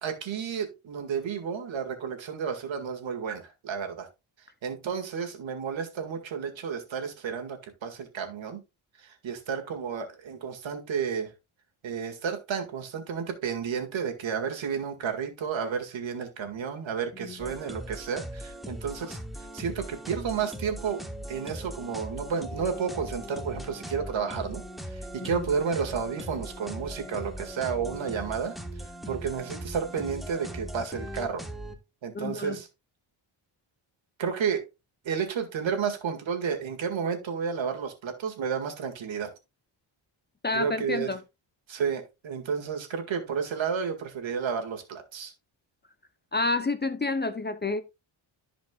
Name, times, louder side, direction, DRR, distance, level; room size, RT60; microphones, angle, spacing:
voice 1, 0.0-4.1 4.6-8.6 9.0-11.3 11.8-19.2 19.5-21.0 21.3-24.6 24.9-28.6 29.1-31.4 32.0-32.7 34.2-34.7 35.1-39.3 40.5-41.1 41.7-45.3, right 6 dB, 65° right, 2.1 m, -31 dB
sound 1, 17.4-31.7, equal, ahead, 1.2 m, -39 dB
voice 2, 32.1-32.6 40.4-41.2 46.3-47.8, left 3 dB, 20° left, 0.7 m, -29 dB
14.5 x 5.1 x 2.3 m
cardioid pair, 95°, 48 cm